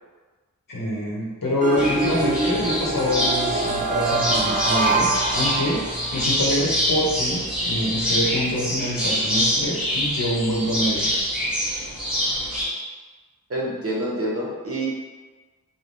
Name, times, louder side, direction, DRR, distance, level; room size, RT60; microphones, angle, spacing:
voice 1, 0.7-5.8 6.1-11.1, left 1 dB, 75° left, -5 dB, 0.9 m, -26 dB
sound 1, 1.6-6.2, right 3 dB, 25° right, 0.5 m, -24 dB
sound 2, 1.8-12.7, equal, 5° right, 1.2 m, -25 dB
voice 2, 13.5-14.9, right 1 dB, 40° right, -5 dB, 0.8 m, -27 dB
3.2 x 2.2 x 2.6 m, 1.3 s
wide cardioid pair, 45°, 34 cm